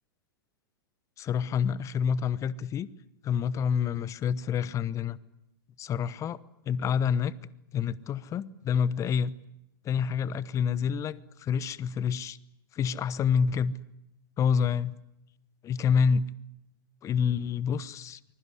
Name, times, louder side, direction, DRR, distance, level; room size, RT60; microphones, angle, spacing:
voice 1, 1.2-2.9 3.2-5.2 5.8-6.4 6.7-7.3 7.7-9.3 9.8-12.4 12.7-13.7 14.4-14.9 15.7-16.3 17.0-18.2, left 7 dB, 25° left, 1.0 m, -27 dB
24.5 x 21.5 x 9.8 m
figure-of-eight pair, 100°, 12 cm